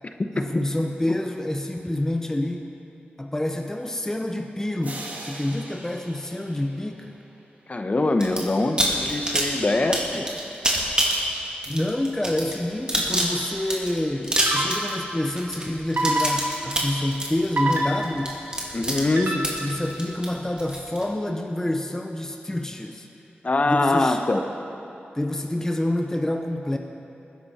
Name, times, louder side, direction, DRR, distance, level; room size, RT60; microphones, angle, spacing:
voice 1, 0.4-2.7 3.2-7.2 11.7-18.4 19.2-23.1 23.7-24.2 25.1-26.8, left 1 dB, 15° left, 4 dB, 0.7 m, -27 dB
sound 1, 4.8-7.7, right 1 dB, 45° right, 2.1 m, -41 dB
voice 2, 7.7-10.3 18.7-19.4 23.4-24.4, left 2 dB, 40° left, 6 dB, 0.9 m, -23 dB
sound 2, 8.2-8.4 8.8-21.0, right 1 dB, 25° right, 2.4 m, -26 dB
sound 3, 13.2-13.5 14.4-15.1 16.0-16.8 17.6-18.4 19.2-19.8, right 1 dB, 65° right, 1.6 m, -27 dB
19.5 x 10.5 x 4.2 m, 2.9 s
wide cardioid pair, 80°, 4 cm